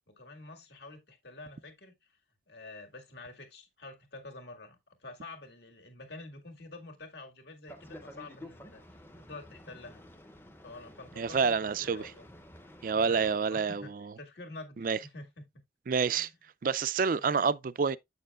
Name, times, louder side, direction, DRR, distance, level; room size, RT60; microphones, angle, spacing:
voice 1, 0.1-2.0 2.5-8.8 9.2-10.0 10.6-12.3 13.0-15.5 16.2-16.3 17.1-17.5, left 2 dB, 60° left, 2.0 m, -48 dB
Boat Water vehicle, 7.7-13.4, left 1 dB, 10° left, 0.7 m, -51 dB
voice 2, 11.2-12.1 12.8-14.1 14.8-15.0 15.9-16.3 16.6-18.0, right 5 dB, 45° right, 0.4 m, -28 dB
8.4 x 6.7 x 2.4 m
head